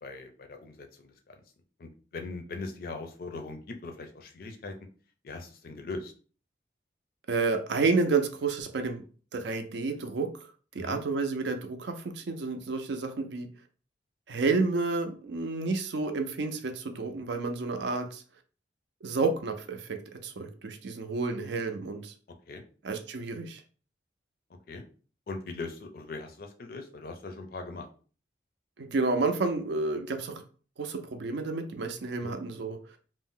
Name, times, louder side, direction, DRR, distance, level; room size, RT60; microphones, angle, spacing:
voice 1, 0.0-1.4 1.8-4.7 5.2-6.1 10.8-11.0 22.5-22.6 24.7-24.8 25.3-27.9 32.2-32.3, left 3 dB, 50° left, 5 dB, 0.4 m, -40 dB
voice 2, 7.3-9.0 9.3-10.3 10.7-13.5 14.3-18.2 19.0-22.1 22.8-23.6 28.8-30.4 30.8-32.8, right 3 dB, 70° right, 6 dB, 0.5 m, -30 dB
2.5 x 2.0 x 3.6 m, 0.40 s
head